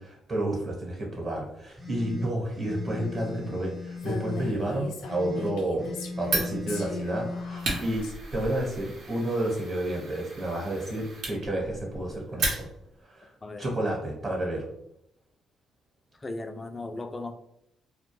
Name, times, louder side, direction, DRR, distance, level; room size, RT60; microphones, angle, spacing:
voice 1, 0.0-8.0 8.3-12.7 13.1-13.3 13.6-14.6, right 1 dB, 45° right, -2 dB, 1.0 m, -30 dB
sound 1, 1.7-4.6 5.0-7.8, left 3 dB, 15° right, 0.7 m, -38 dB
Female speech woman speaking, 4.0-8.1, left 2 dB, 90° left, 0.5 m, -39 dB
Fire, 6.2-13.0, right 2 dB, 70° right, 0.9 m, -35 dB
voice 2, 16.1-17.3, left 2 dB, 25° left, 6 dB, 0.3 m, -36 dB
2.3 x 2.1 x 3.0 m, 0.77 s
cardioid pair, 90°, 0 cm